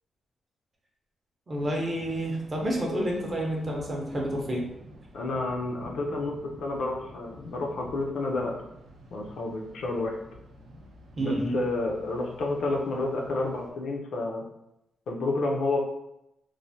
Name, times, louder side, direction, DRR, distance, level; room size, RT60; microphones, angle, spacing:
voice 1, 1.5-4.6 11.2-11.5, equal, 25° right, -1 dB, 0.5 m, -29 dB
Thunder, 1.5-13.7, right 1 dB, 80° right, 0.5 m, -49 dB
voice 2, 5.1-8.5 9.1-10.2 11.2-14.5 15.1-15.8, left 2 dB, 65° left, 0 dB, 0.4 m, -30 dB
3.1 x 2.0 x 2.6 m, 0.85 s
wide cardioid pair, 160°, 0 cm